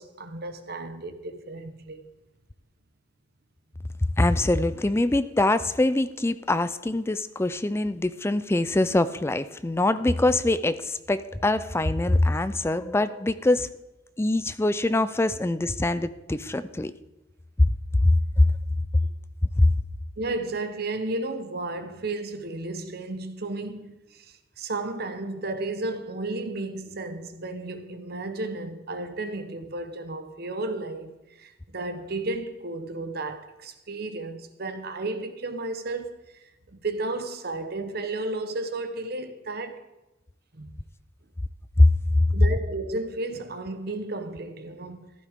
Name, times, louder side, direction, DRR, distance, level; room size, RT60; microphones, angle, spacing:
voice 1, 0.0-2.1 20.2-39.8 40.5-40.7 42.3-45.1, right 2 dB, 55° right, 1.0 m, -33 dB
voice 2, 4.2-13.7 14.2-16.9 17.6-18.5 19.6-19.7 41.8-41.9 42.2-42.3, left 2 dB, 15° left, 0.4 m, -23 dB
14.5 x 12.0 x 3.6 m
head